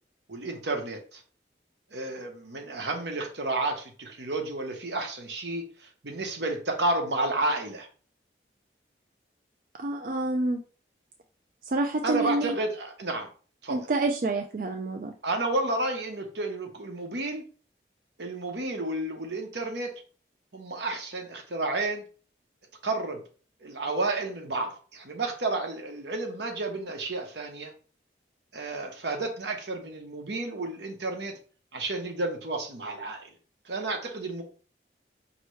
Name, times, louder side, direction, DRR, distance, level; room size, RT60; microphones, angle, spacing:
voice 1, 0.3-1.2 1.9-7.9 12.0-13.3 13.6-13.8 15.2-17.4 18.2-19.9 20.5-22.0 22.8-23.2 23.6-27.7 28.5-31.4 31.7-33.3 33.6-34.4, right 2 dB, 75° right, 3 dB, 1.0 m, -31 dB
voice 2, 9.8-10.6 11.6-12.5 13.7-15.1, right 2 dB, 50° right, 4 dB, 0.4 m, -28 dB
5.4 x 2.9 x 3.1 m, 0.40 s
head